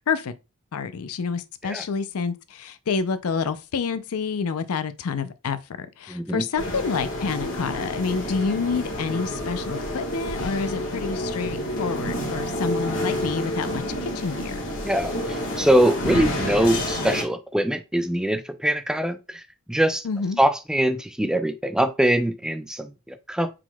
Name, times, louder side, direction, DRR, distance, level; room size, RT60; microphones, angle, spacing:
voice 1, 0.7-14.6 20.0-20.4, left 5 dB, 85° left, 0.5 m, -28 dB
voice 2, 6.1-6.4 14.8-19.4 19.7-20.1 20.4-23.6, right 1 dB, 5° right, 0.3 m, -23 dB
sound 1, 6.6-17.2, left 1 dB, 60° left, 1.6 m, -29 dB
4.7 x 3.8 x 2.2 m
head